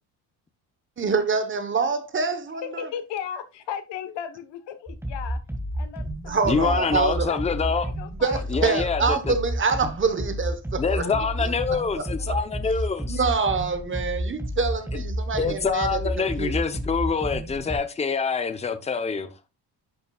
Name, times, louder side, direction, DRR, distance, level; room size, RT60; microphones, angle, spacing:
voice 1, 1.0-2.9 6.3-7.3 8.2-11.0 11.4-11.5 12.0-12.4 13.0-16.5, right 4 dB, 30° right, 1.1 m, -26 dB
voice 2, 2.5-5.4 5.7-6.8 7.3-8.8 11.0-12.7, left 9 dB, 80° left, 1.3 m, -37 dB
sound 1, 4.9-17.8, equal, 5° right, 2.2 m, -31 dB
voice 3, 6.4-7.9 8.5-9.3 10.8-13.2 14.9-15.0 15.4-19.3, left 5 dB, 15° left, 0.8 m, -26 dB
10.5 x 7.0 x 2.4 m
cardioid pair, 145°, 42 cm